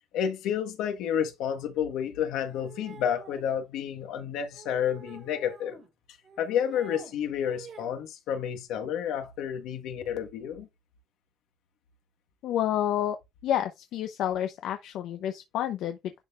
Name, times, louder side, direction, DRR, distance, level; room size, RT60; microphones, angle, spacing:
voice 1, 0.1-5.8 6.4-10.7, left 9 dB, 85° left, 1.5 m, -30 dB
sound 1, 2.5-3.5 4.5-5.9 6.2-7.1 7.4-8.0, right 5 dB, 40° right, 5.1 m, -48 dB
voice 2, 12.4-13.2 13.4-16.1, left 11 dB, 70° left, 0.7 m, -29 dB
10.5 x 4.0 x 2.5 m
cardioid pair, 150°, 0 cm